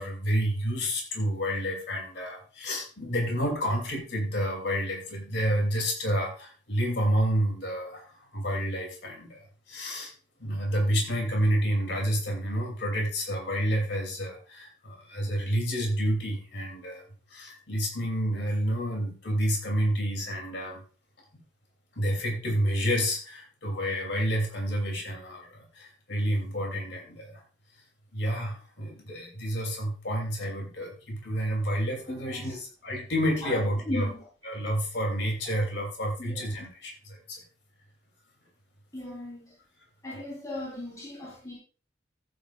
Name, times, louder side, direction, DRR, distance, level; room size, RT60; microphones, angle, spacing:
voice 1, 0.0-10.1 10.4-17.0 17.3-20.8 21.9-27.4 28.1-34.1 34.4-37.4, equal, 65° left, 1 dB, 3.0 m, -29 dB
voice 2, 32.1-32.6 33.4-33.6 33.9-34.2 36.2-36.4 38.9-39.5 40.0-41.5, left 1 dB, 15° left, -5 dB, 3.7 m, -37 dB
14.5 x 9.5 x 2.5 m, 0.38 s
head